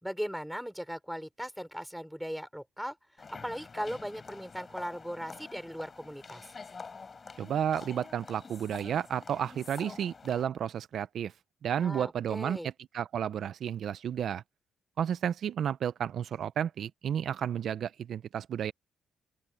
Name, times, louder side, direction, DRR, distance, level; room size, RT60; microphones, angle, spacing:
voice 1, 0.0-3.0 3.3-6.5 11.8-12.7, equal, ahead, 4.3 m, -38 dB
sound 1, 3.2-10.4, left 4 dB, 25° left, 5.2 m, -47 dB
voice 2, 7.4-11.3 11.6-14.4 15.0-18.7, right 9 dB, 50° right, 0.4 m, -32 dB
open air
cardioid pair, 160°, 0 cm